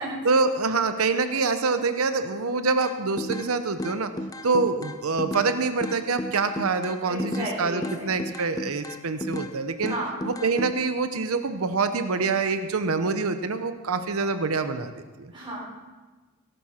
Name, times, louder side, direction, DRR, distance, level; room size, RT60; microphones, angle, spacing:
voice 1, 0.2-4.1 4.4-9.9 10.2-15.3, right 4 dB, 70° right, 9 dB, 0.8 m, -26 dB
sound 1, 2.8-3.5 3.8-5.5 5.8-7.5 7.8-9.5 9.8-10.7, left 1 dB, 15° left, 0.6 m, -33 dB
voice 2, 7.1-8.1 9.8-10.1 15.3-15.6, right 1 dB, 25° right, -7 dB, 4.7 m, -33 dB
18.5 x 12.0 x 4.3 m, 1.3 s
head